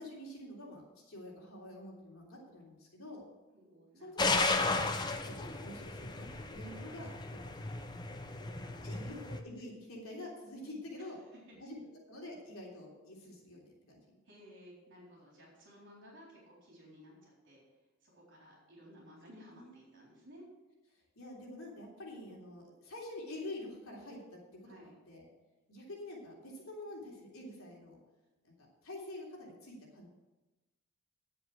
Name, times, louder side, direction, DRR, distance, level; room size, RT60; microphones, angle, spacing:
voice 1, 0.0-3.2 4.0-4.2 4.7-7.8 8.8-11.2 11.6-11.8 12.1-14.2 19.5-20.0 20.9-24.4 24.7-25.3 25.7-28.0 28.4-28.5 28.8-30.1, left 1 dB, 75° left, -2 dB, 3.3 m, -47 dB
voice 2, 3.5-4.2 8.2-9.1 11.0-11.1 14.3-17.6 18.0-20.4 24.6-24.9, equal, 55° right, -4 dB, 4.0 m, -56 dB
sound 1, 4.2-9.4, left 3 dB, 20° left, 0.6 m, -34 dB
10.0 x 7.9 x 6.3 m, 1.1 s
head